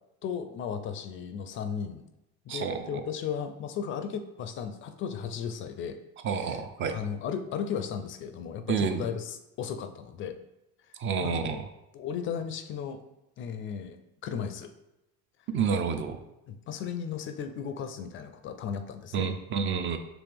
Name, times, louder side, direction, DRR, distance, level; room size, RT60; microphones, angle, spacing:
voice 1, 0.2-2.1 2.5-6.0 6.3-6.6 6.9-10.4 10.9-11.6 11.9-13.0 13.4-14.0 14.2-14.7 16.5-19.3, left 7 dB, 40° left, 9 dB, 0.4 m, -35 dB
voice 2, 2.5-3.0 6.2-7.0 8.7-9.0 11.0-11.6 15.5-16.2 19.1-20.0, right 6 dB, 40° right, 8 dB, 0.4 m, -29 dB
5.0 x 3.0 x 3.4 m, 0.92 s
cardioid pair, 125°, 31 cm